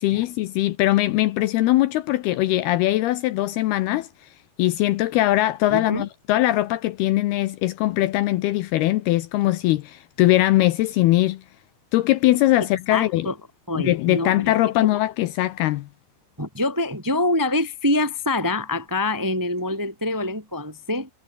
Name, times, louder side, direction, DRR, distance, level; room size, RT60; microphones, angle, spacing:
voice 1, 0.0-4.1 4.6-11.4 11.9-13.3 13.8-15.9, left 16 dB, 80° left, 2.5 m, -21 dB
voice 2, 5.7-6.1 12.9-13.3 13.7-14.4 16.4-21.1, left 2 dB, 10° right, 1.2 m, -25 dB
omnidirectional pair, 5.2 m